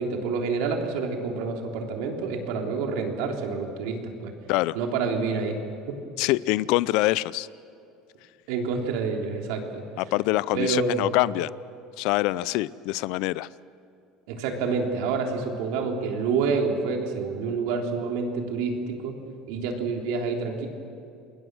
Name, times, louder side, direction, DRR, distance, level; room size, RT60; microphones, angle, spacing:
voice 1, 0.0-4.3 4.7-5.6 5.9-6.0 8.5-9.8 10.5-11.2 14.3-19.1 19.5-20.7, right 4 dB, 75° right, 2 dB, 3.6 m, -28 dB
voice 2, 6.2-7.5 10.0-11.5 12.0-13.5, left 18 dB, 65° left, 20 dB, 0.5 m, -25 dB
28.5 x 21.0 x 6.3 m, 2.6 s
cardioid pair, 135°, 0 cm